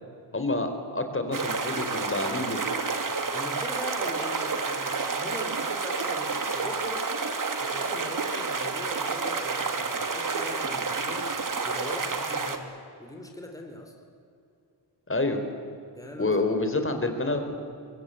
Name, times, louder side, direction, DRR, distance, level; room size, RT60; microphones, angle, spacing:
voice 1, 0.3-2.6 15.1-15.4 16.2-17.6, left 2 dB, 30° left, 6 dB, 3.9 m, -28 dB
sound 1, 1.3-12.6, right 4 dB, 45° right, 2.6 m, -30 dB
voice 2, 3.3-7.1 7.6-11.3 11.6-13.9 16.0-16.4, left 1 dB, 10° left, 3 dB, 4.0 m, -41 dB
24.0 x 23.5 x 9.0 m, 2.6 s
cardioid pair, 85°, 43 cm